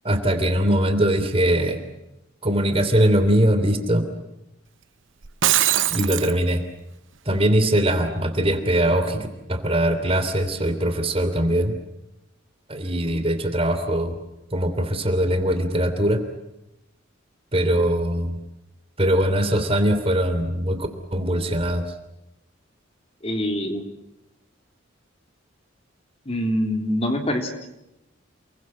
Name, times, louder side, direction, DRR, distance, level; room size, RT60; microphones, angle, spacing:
voice 1, 0.0-1.8 2.4-4.1 5.9-6.6 7.3-11.7 12.7-14.2 14.5-16.2 17.5-18.3 19.0-21.9, right 1 dB, 30° right, 8 dB, 3.0 m, -21 dB
Shatter, 5.2-6.3, right 13 dB, 75° right, 0.9 m, -21 dB
voice 2, 23.2-23.8 26.2-27.7, equal, 30° left, 5 dB, 3.3 m, -25 dB
29.0 x 22.5 x 7.7 m, 0.89 s
head